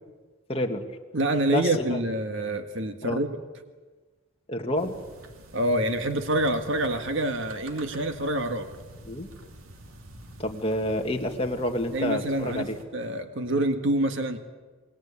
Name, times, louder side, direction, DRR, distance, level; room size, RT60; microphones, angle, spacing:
voice 1, 0.5-0.8 1.5-2.0 3.0-3.2 4.5-4.9 9.0-9.3 10.4-12.8, left 1 dB, 25° left, 2 dB, 2.0 m, -28 dB
voice 2, 1.1-3.3 5.5-8.7 11.9-14.4, right 1 dB, 60° right, 7 dB, 1.8 m, -27 dB
sound 1, 4.7-12.8, right 1 dB, 80° right, 3.2 m, -47 dB
28.5 x 21.5 x 8.5 m, 1.3 s
head